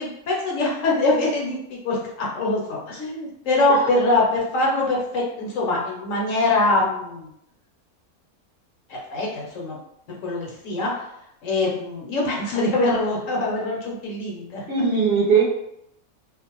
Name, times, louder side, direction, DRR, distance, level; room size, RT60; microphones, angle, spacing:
voice 1, 0.0-7.3 8.9-9.8 10.2-11.0 11.4-14.6, left 2 dB, 65° left, -3 dB, 1.0 m, -23 dB
voice 2, 14.7-15.4, right 5 dB, 55° right, -7 dB, 0.6 m, -19 dB
2.5 x 2.1 x 2.9 m, 0.78 s
omnidirectional pair, 1.5 m